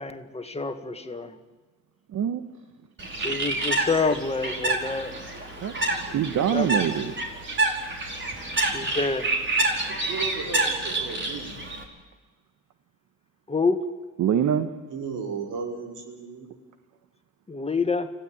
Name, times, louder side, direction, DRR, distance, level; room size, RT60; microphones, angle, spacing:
voice 1, 0.0-1.4 3.1-5.1 6.5-7.0 8.6-9.3 13.5-13.8 17.5-18.1, left 4 dB, 20° left, 7 dB, 1.9 m, -27 dB
voice 2, 2.1-2.4 5.6-5.7 6.0-7.1 14.2-14.7, right 9 dB, 70° right, 9 dB, 1.5 m, -24 dB
Bird, 3.0-11.8, right 2 dB, 40° right, 4.9 m, -28 dB
voice 3, 10.1-11.6 14.9-16.6, right 5 dB, 85° right, 1 dB, 5.1 m, -35 dB
26.0 x 16.0 x 8.9 m, 1.3 s
cardioid pair, 90°, 30 cm